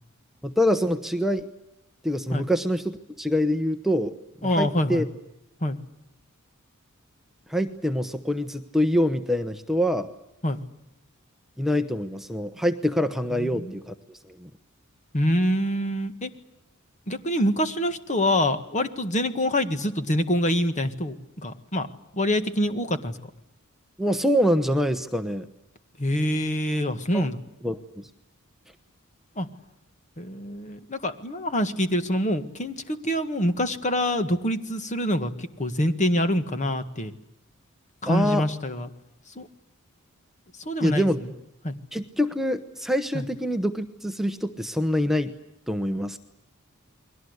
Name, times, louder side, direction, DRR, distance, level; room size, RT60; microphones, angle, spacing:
voice 1, 0.4-1.5 2.0-4.1 4.4-5.0 7.5-10.1 11.6-13.9 14.2-14.5 24.0-25.4 27.1-27.2 27.6-28.1 38.1-38.5 40.8-41.2 41.9-45.3 45.7-46.2, equal, ahead, 7 dB, 1.0 m, -25 dB
voice 2, 4.4-5.1 5.6-5.8 10.4-10.6 13.3-13.7 15.1-16.3 17.1-21.9 22.1-23.1 26.0-27.4 29.4-29.5 30.2-37.1 38.0-38.9 39.4-39.5 40.7-41.1 41.6-41.7 43.1-43.2, left 1 dB, 35° left, 10 dB, 1.8 m, -25 dB
29.5 x 22.5 x 8.1 m, 0.85 s
head